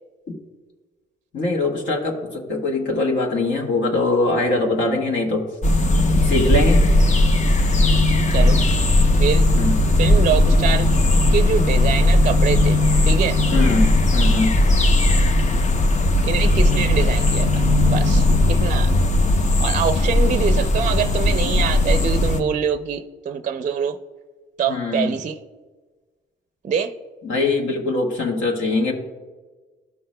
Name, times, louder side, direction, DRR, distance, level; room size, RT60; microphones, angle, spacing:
voice 1, 1.3-5.5 6.2-6.9 9.6-9.8 13.5-14.6 24.7-25.2 27.2-28.9, left 2 dB, 70° left, 1.6 m, -22 dB
sound 1, 5.6-22.4, left 1 dB, 35° left, 0.7 m, -17 dB
voice 2, 10.0-10.9 11.3-12.8 13.0-13.4 16.2-18.9 19.6-24.0 24.6-25.4 26.6-26.9, right 7 dB, 40° right, 0.5 m, -24 dB
14.5 x 5.7 x 2.2 m
cardioid pair, 90°, 20 cm